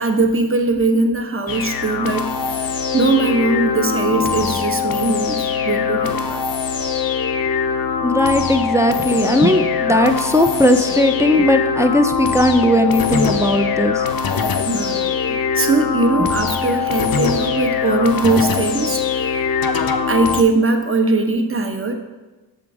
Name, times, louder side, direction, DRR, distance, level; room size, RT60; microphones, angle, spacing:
voice 1, 0.0-6.4 14.7-21.9, right 3 dB, 30° right, 4 dB, 0.8 m, -20 dB
sound 1, 1.5-20.4, left 6 dB, 60° left, 0.6 m, -22 dB
voice 2, 8.0-14.0 16.2-16.3, left 1 dB, 5° right, 5 dB, 0.4 m, -17 dB
7.0 x 3.7 x 4.7 m, 1.2 s
cardioid pair, 40°, 40 cm